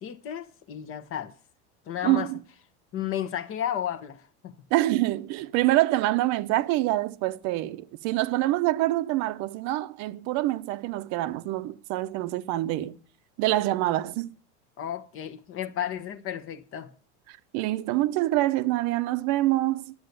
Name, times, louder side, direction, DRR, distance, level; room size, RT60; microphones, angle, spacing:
voice 1, 0.0-1.3 1.9-2.3 2.9-4.6 14.8-16.9, left 10 dB, 35° left, 1.1 m, -33 dB
voice 2, 2.0-2.4 4.7-13.0 13.4-14.3 17.3-19.9, right 16 dB, 50° right, 0.8 m, -26 dB
11.5 x 8.0 x 6.7 m
supercardioid pair, 125°, 35 cm